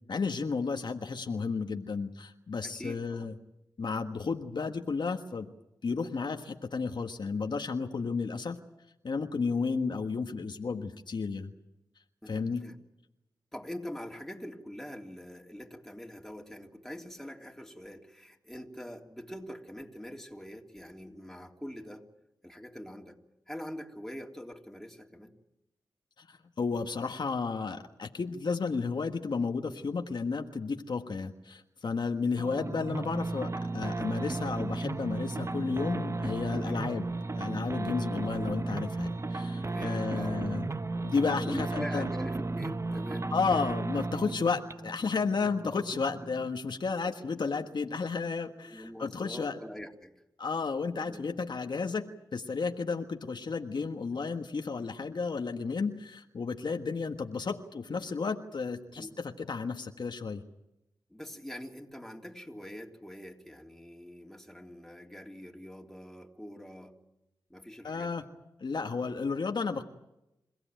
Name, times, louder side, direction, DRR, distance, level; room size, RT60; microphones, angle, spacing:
voice 1, 0.1-3.3 3.8-5.5 5.8-8.6 9.0-11.5 12.3-12.6 26.2-37.1 37.3-40.7 41.0-42.1 43.3-49.6 50.4-52.0 52.3-60.4 67.8-68.2 68.6-69.8, left 4 dB, 65° left, 5 dB, 1.5 m, -32 dB
voice 2, 2.6-3.3 12.2-12.8 13.5-22.0 22.4-23.2 23.5-25.3 36.6-36.8 39.6-40.4 40.7-40.8 41.4-43.3 45.1-45.2 47.0-47.1 48.6-50.2 51.0-51.2 59.0-59.1 61.1-66.9 67.5-68.3, equal, 5° left, 1 dB, 3.4 m, -43 dB
sound 1, 32.4-46.5, right 3 dB, 35° right, 0.9 m, -34 dB
27.0 x 16.0 x 9.2 m, 0.90 s
cardioid pair, 45°, 8 cm